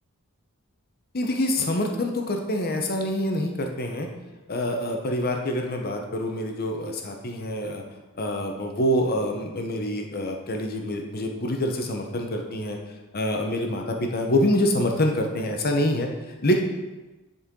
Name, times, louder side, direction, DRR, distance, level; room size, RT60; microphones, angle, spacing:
voice 1, 1.1-4.1 4.5-7.8 8.2-12.8 13.1-16.1 16.4-16.6, left 1 dB, 45° left, 3 dB, 0.9 m, -26 dB
9.9 x 4.2 x 3.8 m, 1.1 s
head